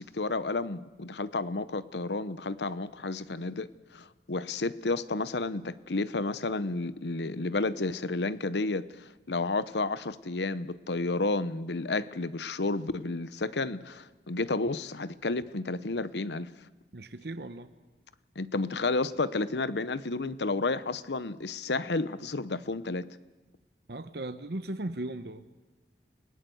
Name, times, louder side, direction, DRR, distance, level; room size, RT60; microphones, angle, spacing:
voice 1, 0.0-16.5 18.4-23.1, left 3 dB, 80° left, 15 dB, 0.9 m, -31 dB
voice 2, 16.9-17.7 23.9-25.4, right 1 dB, 70° right, 10 dB, 1.0 m, -37 dB
30.0 x 18.5 x 7.9 m, 1.2 s
head